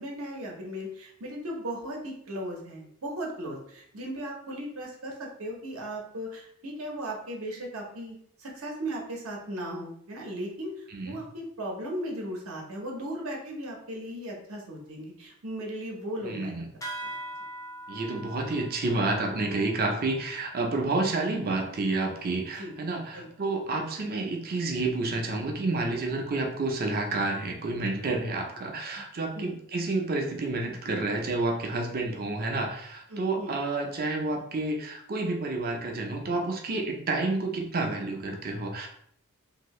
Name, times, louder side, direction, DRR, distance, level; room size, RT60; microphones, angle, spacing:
voice 1, 0.0-16.7 17.0-17.1 22.6-22.7 23.1-23.3 23.8-23.9 29.3-29.6 33.1-33.6, right 1 dB, 65° right, -1 dB, 0.9 m, -37 dB
voice 2, 16.2-16.7 17.9-38.9, right 2 dB, 45° right, 1 dB, 0.6 m, -29 dB
sound 1, 16.8-21.8, right 1 dB, 15° left, 0.4 m, -43 dB
2.8 x 2.7 x 3.1 m, 0.67 s
head